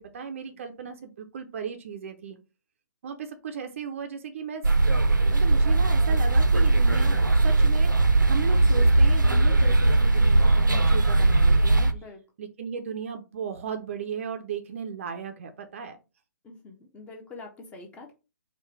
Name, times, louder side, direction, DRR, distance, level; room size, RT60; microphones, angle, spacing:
voice 1, 0.0-2.4 3.0-4.7 5.3-11.9 12.4-16.0, right 6 dB, 40° right, 6 dB, 0.6 m, -36 dB
sound 1, 4.6-11.9, right 2 dB, 80° right, 0.7 m, -19 dB
voice 2, 16.4-18.1, left 3 dB, 10° left, 2 dB, 0.9 m, -45 dB
4.7 x 2.4 x 4.5 m, 0.30 s
figure-of-eight pair, 130°, 10 cm